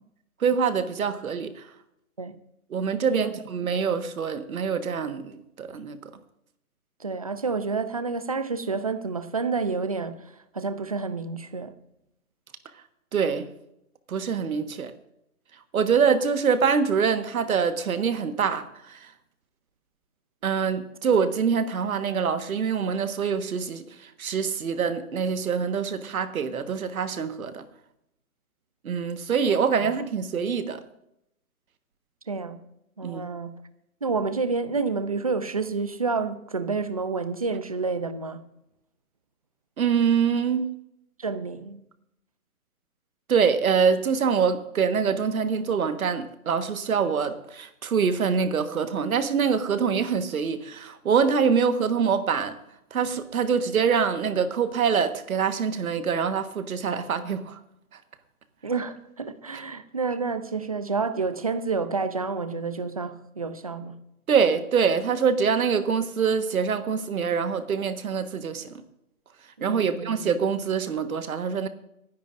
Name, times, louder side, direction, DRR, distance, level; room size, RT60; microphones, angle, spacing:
voice 1, 0.4-1.7 2.7-6.1 13.1-13.5 14.1-14.9 15.7-19.1 20.4-27.6 28.8-30.8 33.0-33.2 39.8-40.7 43.3-52.5 52.9-57.6 64.3-68.8 69.6-71.7, right 6 dB, 70° right, 1.5 m, -25 dB
voice 2, 7.0-11.7 29.8-29.9 32.3-32.6 33.0-33.6 34.0-38.4 41.2-41.8 58.6-64.0 69.7-70.2, right 4 dB, 25° right, 0.5 m, -29 dB
24.0 x 10.5 x 2.6 m
hypercardioid pair, 165°, 45 cm